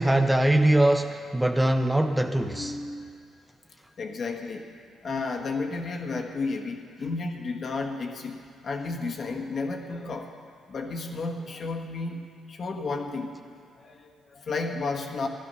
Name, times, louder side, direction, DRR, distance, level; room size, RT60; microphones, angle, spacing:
voice 1, 0.0-2.8, right 1 dB, 10° right, 6 dB, 0.6 m, -22 dB
voice 2, 2.5-3.2 4.0-4.7 5.0-8.4 8.6-10.4 10.7-13.4 13.7-15.3, left 3 dB, 50° left, 3 dB, 1.4 m, -32 dB
14.0 x 11.5 x 5.5 m, 2.2 s
cardioid pair, 90°, 0 cm